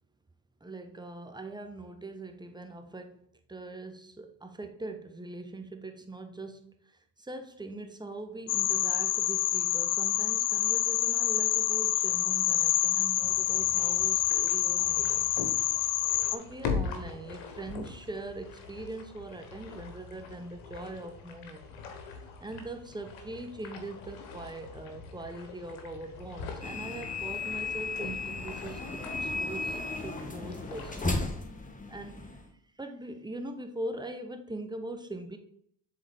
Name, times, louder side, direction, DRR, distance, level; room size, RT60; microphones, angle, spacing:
voice 1, 0.6-15.6 16.3-21.7 22.4-31.0 31.9-35.4, right 2 dB, 10° right, 0.9 m, -42 dB
sound 1, 8.5-16.4, left 13 dB, 55° left, 0.5 m, -27 dB
sound 2, 13.2-31.2, left 5 dB, 75° left, 1.2 m, -42 dB
sound 3, 26.6-32.5, left 3 dB, 15° left, 1.1 m, -35 dB
7.3 x 3.8 x 3.5 m
hypercardioid pair, 50°, 50 cm